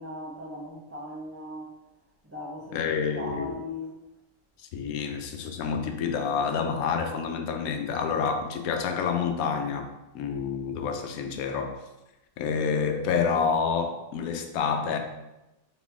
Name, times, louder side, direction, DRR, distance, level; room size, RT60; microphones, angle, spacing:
voice 1, 0.0-1.7 2.2-3.9, left 1 dB, 15° right, -4 dB, 0.7 m, -38 dB
voice 2, 2.7-3.5 4.7-9.9 10.1-11.8 12.4-15.0, left 6 dB, 90° left, 5 dB, 1.0 m, -28 dB
4.1 x 3.0 x 3.5 m, 0.96 s
omnidirectional pair, 1.5 m